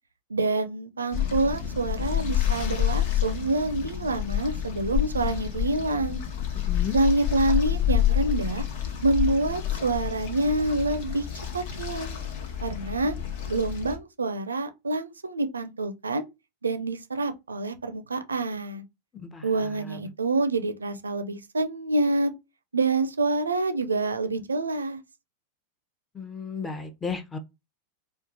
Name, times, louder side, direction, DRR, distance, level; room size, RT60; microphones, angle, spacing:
voice 1, 0.3-6.2 6.9-8.6 9.0-11.3 11.5-12.1 12.6-13.1 13.5-16.3 16.6-18.8 19.4-22.3 22.7-25.0, right 2 dB, 75° right, 0.5 m, -27 dB
sound 1, 1.1-14.0, left 11 dB, 50° left, 0.9 m, -28 dB
voice 2, 6.6-7.0 19.1-19.5 19.9-20.0 26.1-27.4, left 5 dB, 15° left, 0.7 m, -34 dB
4.4 x 2.4 x 2.7 m
figure-of-eight pair, 90°, 0 cm